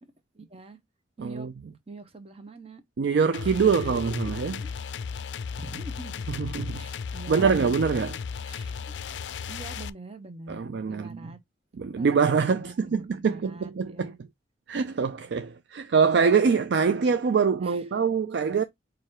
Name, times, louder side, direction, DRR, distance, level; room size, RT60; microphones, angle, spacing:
voice 1, 0.0-0.8 1.2-1.5 1.9-2.8 3.6-4.0 4.6-5.0 5.6-6.1 6.7-7.5 8.0-9.1 9.5-11.4 11.9-12.1 12.4-14.2 17.6-17.8, right 3 dB, 35° right, 0.8 m, -44 dB
voice 2, 1.2-1.5 3.0-4.6 6.3-6.8 7.3-8.2 10.5-11.1 11.7-14.1 14.7-18.6, right 5 dB, 65° right, 0.4 m, -24 dB
sound 1, 3.3-9.9, left 6 dB, 75° left, 0.4 m, -35 dB
4.8 x 2.6 x 4.3 m
head